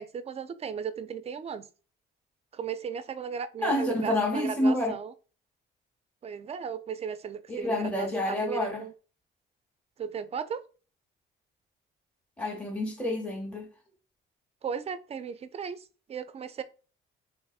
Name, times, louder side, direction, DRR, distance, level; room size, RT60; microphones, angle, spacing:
voice 1, 0.0-1.7 2.5-5.1 6.2-8.9 10.0-10.6 14.6-16.6, right 7 dB, 30° right, 0.3 m, -36 dB
voice 2, 3.6-4.9 7.5-8.8 12.4-13.7, left 1 dB, 5° left, 0.8 m, -28 dB
3.4 x 2.9 x 2.3 m
cardioid pair, 90°, 20 cm